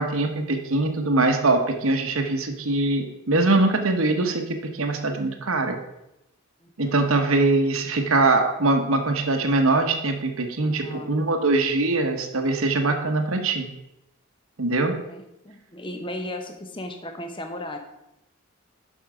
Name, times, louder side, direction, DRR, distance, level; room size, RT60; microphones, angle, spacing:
voice 1, 0.0-5.8 6.8-13.7 14.6-15.0, right 2 dB, 65° right, 5 dB, 1.0 m, -22 dB
voice 2, 6.6-7.1 10.6-11.1 15.0-17.8, left 1 dB, 20° left, 5 dB, 0.8 m, -36 dB
7.4 x 6.2 x 4.9 m, 0.87 s
head